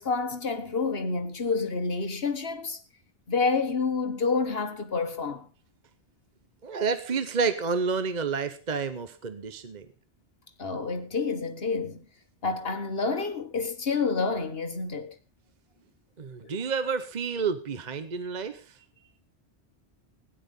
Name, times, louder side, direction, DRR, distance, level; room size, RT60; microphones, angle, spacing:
voice 1, 0.0-2.8 3.3-5.5 10.6-12.0 12.4-15.1 16.4-16.5, left 4 dB, 60° left, 1.6 m, -28 dB
voice 2, 6.6-9.9 16.2-18.8, right 5 dB, 40° right, 1.0 m, -30 dB
17.0 x 10.0 x 5.3 m
omnidirectional pair, 1.2 m